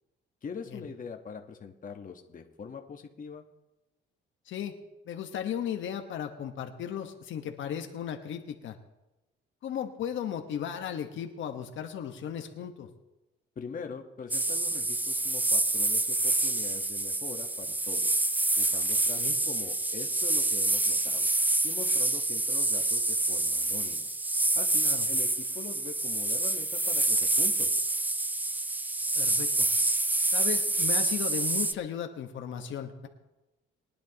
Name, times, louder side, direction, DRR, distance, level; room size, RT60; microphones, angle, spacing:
voice 1, 0.4-3.4 13.6-18.1 18.5-21.3 21.6-24.1 24.5-27.7, left 6 dB, 40° left, 4 dB, 1.3 m, -43 dB
voice 2, 5.0-8.8 9.6-12.9 19.2-19.4 24.8-25.0 29.1-29.7 30.3-33.1, left 9 dB, 75° left, 5 dB, 1.3 m, -36 dB
sound 1, 14.3-31.7, right 2 dB, 10° right, 0.4 m, -27 dB
22.5 x 10.0 x 2.9 m, 1.0 s
cardioid pair, 90°, 20 cm